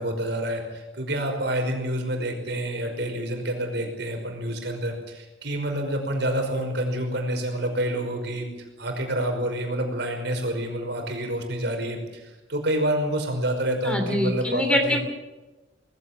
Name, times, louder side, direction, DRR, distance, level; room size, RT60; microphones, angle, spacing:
voice 1, 0.0-8.5 8.8-15.0, right 1 dB, 65° right, 3 dB, 5.4 m, -28 dB
voice 2, 13.8-15.0, equal, 5° left, 3 dB, 2.9 m, -24 dB
20.0 x 16.0 x 8.8 m, 1.1 s
head